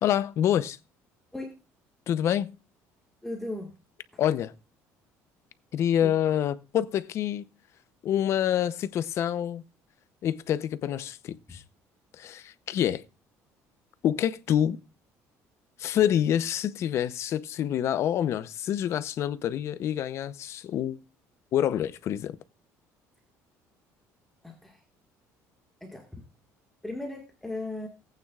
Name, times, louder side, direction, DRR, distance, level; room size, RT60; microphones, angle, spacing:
voice 1, 0.0-0.8 2.1-2.6 4.2-4.5 5.7-7.4 8.0-9.6 10.2-11.6 12.1-13.0 14.0-14.8 15.8-21.0 21.5-22.4, left 10 dB, 45° left, 0.7 m, -27 dB
voice 2, 3.2-3.7 6.0-6.1 24.4-24.8 25.8-26.2 26.8-27.9, left 2 dB, 5° left, 1.7 m, -36 dB
18.0 x 9.0 x 2.4 m
cardioid pair, 155°, 6 cm